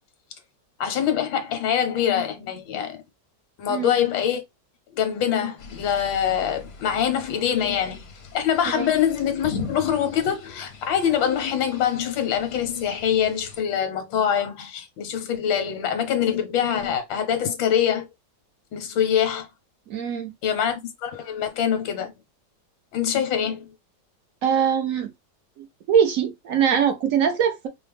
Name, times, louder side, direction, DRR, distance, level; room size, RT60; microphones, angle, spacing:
voice 1, 0.8-3.0 3.6-4.4 4.9-8.0 8.3-18.0 18.7-19.5 20.4-22.1 22.9-23.7, left 9 dB, 85° left, 1.5 m, -24 dB
sound 1, 5.6-13.6, left 4 dB, 55° left, 0.7 m, -40 dB
voice 2, 19.9-20.3 24.4-25.1 25.6-27.7, right 8 dB, 65° right, 0.9 m, -22 dB
4.8 x 2.0 x 3.4 m
omnidirectional pair, 2.0 m